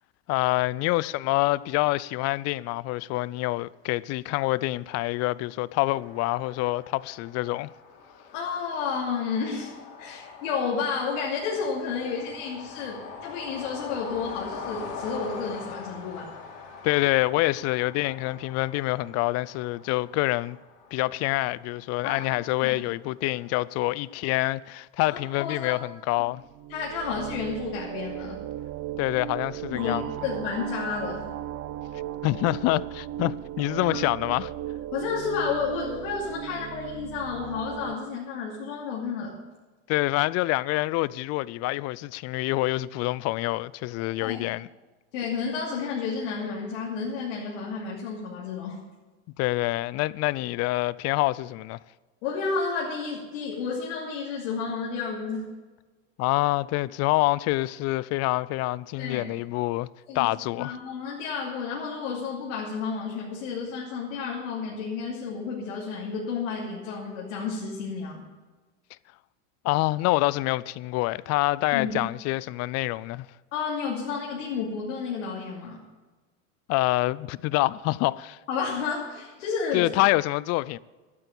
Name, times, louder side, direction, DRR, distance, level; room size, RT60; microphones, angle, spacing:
voice 1, 0.3-7.7 10.1-10.2 16.8-20.6 20.9-26.4 29.0-30.0 32.2-34.5 39.9-44.7 49.4-51.8 56.2-59.9 60.1-60.8 69.6-73.3 76.7-78.4 79.7-80.8, left 19 dB, 45° left, 0.4 m, -26 dB
sound 1, 5.9-24.5, left 5 dB, 60° left, 3.3 m, -43 dB
voice 2, 8.3-9.7 10.0-16.3 22.0-22.8 25.1-25.7 26.7-28.4 29.7-29.9 30.2-31.3 34.9-39.4 44.2-44.4 45.1-48.8 52.2-55.5 59.0-59.3 60.1-68.3 71.7-72.0 73.5-75.8 78.5-79.9, left 5 dB, 75° left, 2.8 m, -31 dB
sound 2, 26.4-37.9, right 12 dB, 40° right, 0.7 m, -36 dB
12.5 x 9.1 x 6.9 m
supercardioid pair, 115°, 38 cm